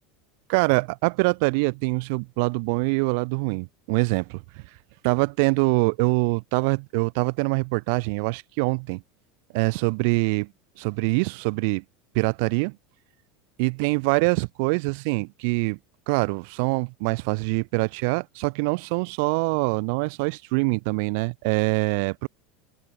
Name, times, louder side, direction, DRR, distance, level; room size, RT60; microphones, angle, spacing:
voice 1, 0.5-4.4 5.0-9.0 9.5-10.5 10.8-11.8 12.1-12.7 13.6-15.8 16.1-22.3, right 32 dB, 70° right, 4.9 m, -24 dB
open air
supercardioid pair, 125°, 0 cm